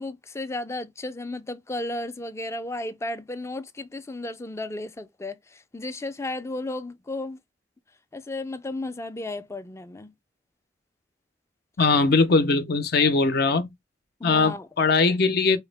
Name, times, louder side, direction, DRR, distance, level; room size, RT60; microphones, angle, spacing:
voice 1, 0.0-7.4 8.1-10.1 14.2-14.7, left 2 dB, 15° left, 0.4 m, -34 dB
voice 2, 11.8-13.7 14.2-15.6, left 4 dB, 60° left, 0.6 m, -21 dB
4.5 x 2.0 x 3.2 m
head